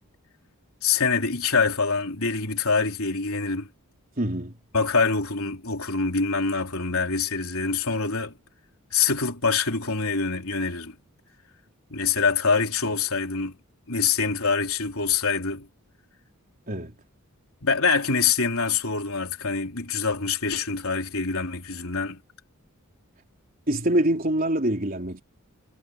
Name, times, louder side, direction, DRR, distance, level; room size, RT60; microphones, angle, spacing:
voice 1, 0.8-3.7 4.7-8.3 8.9-10.9 11.9-13.6 13.9-15.7 17.6-22.2, left 5 dB, 70° left, 3.9 m, -25 dB
voice 2, 4.2-4.5 16.7-16.9 23.7-25.2, right 1 dB, 40° right, 3.7 m, -24 dB
head